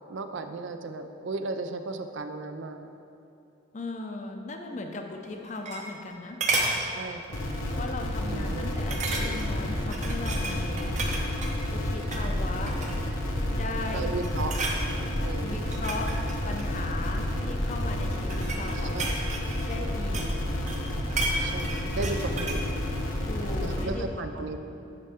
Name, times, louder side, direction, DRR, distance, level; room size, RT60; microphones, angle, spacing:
voice 1, 0.1-2.9 6.8-7.4 8.3-8.8 13.9-14.5 15.2-15.6 18.9-19.3 21.4-22.8 23.6-24.6, right 3 dB, 70° right, 8 dB, 0.4 m, -35 dB
voice 2, 3.7-6.4 7.8-10.9 11.7-12.8 13.5-14.1 15.4-16.1 16.5-19.0 19.7-20.4 23.2-24.6, left 3 dB, 35° left, 4 dB, 0.5 m, -37 dB
sound 1, 5.2-6.1 6.4-6.8 7.3-7.5 7.9-8.0 8.9-9.5 9.9-11.5 12.0-12.3 12.7-13.2 13.7-14.0 14.2-14.8 15.5-17.2 18.0-20.4 20.7-22.7 23.0-23.1, right 2 dB, 35° right, 0.7 m, -32 dB
sound 2, 7.3-23.8, left 1 dB, 90° left, 1.1 m, -30 dB
9.7 x 5.4 x 3.5 m, 2.8 s
head